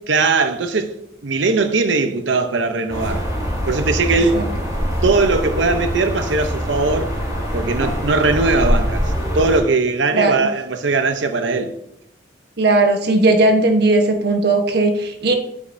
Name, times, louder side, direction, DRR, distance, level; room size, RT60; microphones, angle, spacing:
voice 1, 0.1-0.9 1.2-3.3 3.7-4.5 5.0-7.1 7.5-11.7, right 3 dB, 80° right, 0.7 m, -19 dB
sound 1, 2.9-9.6, equal, 20° right, 3.4 m, -23 dB
voice 2, 4.1-4.5 10.1-10.5 12.6-15.4, right 2 dB, 60° right, 1.1 m, -17 dB
8.7 x 8.2 x 2.6 m
head